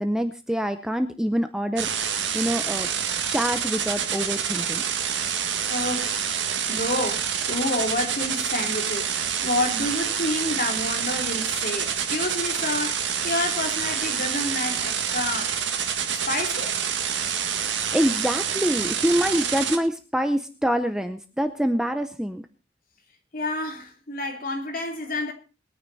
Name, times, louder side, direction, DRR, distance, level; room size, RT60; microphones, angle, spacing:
voice 1, 0.0-1.9 2.3-2.9 3.3-4.8 17.6-22.4, equal, 5° right, 0.7 m, -25 dB
sound 1, 1.8-19.8, right 8 dB, 65° right, 2.0 m, -27 dB
voice 2, 5.7-9.1 9.4-15.6 16.3-16.9 23.3-25.3, left 2 dB, 45° left, 3.1 m, -29 dB
21.5 x 9.5 x 4.1 m
head